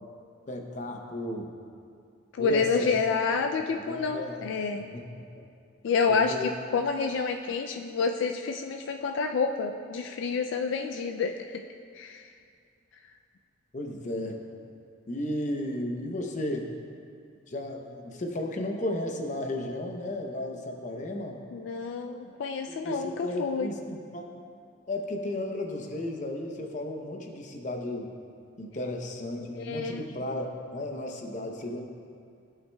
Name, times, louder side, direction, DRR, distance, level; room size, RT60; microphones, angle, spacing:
voice 1, 0.5-1.5 2.4-3.0 3.6-4.4 4.9-5.3 6.1-6.5 13.7-14.6 15.1-16.7 17.5-21.4 22.7-24.4 24.9-28.1 28.6-31.8, left 1 dB, 40° left, 3 dB, 0.7 m, -34 dB
voice 2, 2.3-4.9 5.8-11.6 11.9-12.3 21.5-23.7 29.5-30.0, left 5 dB, 70° left, 5 dB, 0.3 m, -29 dB
15.5 x 5.7 x 2.2 m, 2.4 s
head